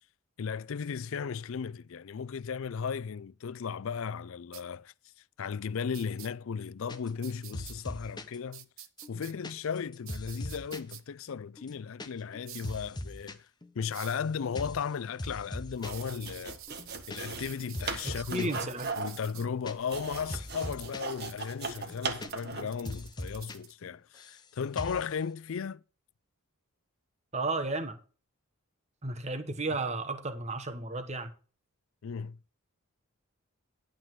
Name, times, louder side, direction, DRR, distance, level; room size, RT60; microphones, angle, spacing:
voice 1, 0.4-4.9 5.4-8.7 9.1-13.5 13.7-16.6 17.1-18.5 19.0-25.8 32.0-32.4, left 6 dB, 65° left, 0.4 m, -35 dB
sound 1, 4.5-4.6 5.9-6.3 7.2-7.7 8.5-9.3 10.1-11.0 12.4-12.8 13.9-14.2 15.8-19.5 20.4-23.7, right 12 dB, 70° right, 0.9 m, -49 dB
sound 2, 6.9-7.3 7.5-8.4 8.8-10.9 11.2-11.3 11.6-12.1 12.3-13.3 13.6-14.2 14.5-14.9 15.2-16.1 16.3-16.4 16.7-17.5 17.7-18.6 19.0-21.1 21.4-21.5 21.8-22.6 22.8-23.6 23.8-24.4 24.8-25.1, left 1 dB, 20° left, 0.8 m, -41 dB
sound 3, 15.7-22.8, right 4 dB, 50° right, 1.4 m, -38 dB
voice 2, 18.0-18.9 22.6-22.7 27.3-28.0 29.0-31.3, right 3 dB, 30° right, 1.2 m, -33 dB
11.5 x 3.8 x 7.7 m
head